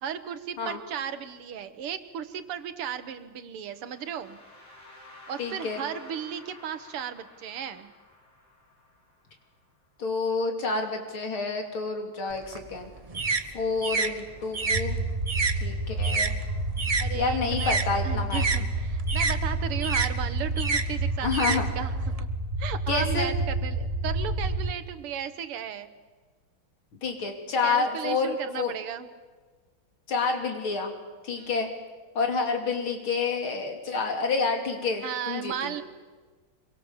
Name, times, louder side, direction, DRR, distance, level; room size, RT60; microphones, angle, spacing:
voice 1, 0.0-4.4 5.3-7.9 17.0-17.8 18.0-21.9 22.6-25.9 27.6-29.1 31.4-31.5 35.0-35.8, right 8 dB, 85° right, 11 dB, 2.2 m, -35 dB
sound 1, 3.7-9.7, left 2 dB, 50° left, 7.7 m, -51 dB
voice 2, 5.4-5.8 10.0-12.9 13.5-15.0 15.6-16.3 17.1-18.4 21.2-21.7 22.9-23.3 27.0-28.7 30.1-30.9 31.2-31.7 32.2-35.8, left 4 dB, 70° left, 3 dB, 3.7 m, -28 dB
sound 2, 12.3-17.1 17.4-22.2, right 4 dB, 45° right, 0.4 m, -30 dB
sound 3, 14.7-24.7, right 2 dB, 65° right, 3.0 m, -29 dB
26.0 x 23.0 x 7.3 m, 1.4 s
omnidirectional pair, 2.4 m